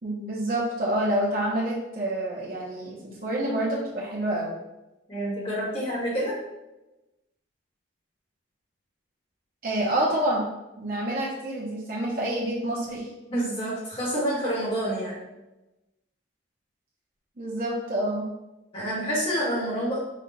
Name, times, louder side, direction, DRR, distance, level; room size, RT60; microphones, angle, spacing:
voice 1, 0.0-4.6 9.6-10.4 10.8-13.1 17.4-18.3, right 1 dB, 50° right, -6 dB, 0.8 m, -27 dB
voice 2, 5.1-6.4 13.3-15.2 18.7-20.0, equal, 30° left, -6 dB, 1.4 m, -28 dB
4.3 x 2.4 x 4.0 m, 0.99 s
head